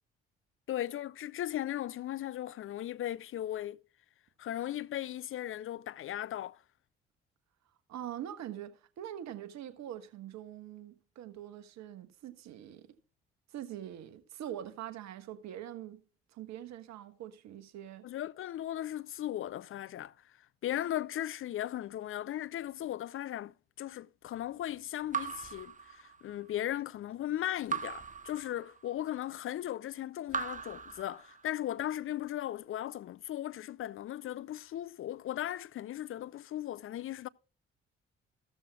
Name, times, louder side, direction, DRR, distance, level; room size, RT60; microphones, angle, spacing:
voice 1, 0.7-3.8 4.4-6.6 18.0-20.1 20.6-23.5 23.8-37.3, left 12 dB, 45° left, 0.5 m, -37 dB
voice 2, 7.9-12.9 13.5-16.0 16.3-18.0, right 11 dB, 60° right, 1.4 m, -44 dB
Raindrop / Drip, 25.1-26.5 27.7-29.1 30.3-31.7, right 6 dB, 25° right, 1.2 m, -39 dB
14.5 x 13.5 x 2.3 m
figure-of-eight pair, 45°, 31 cm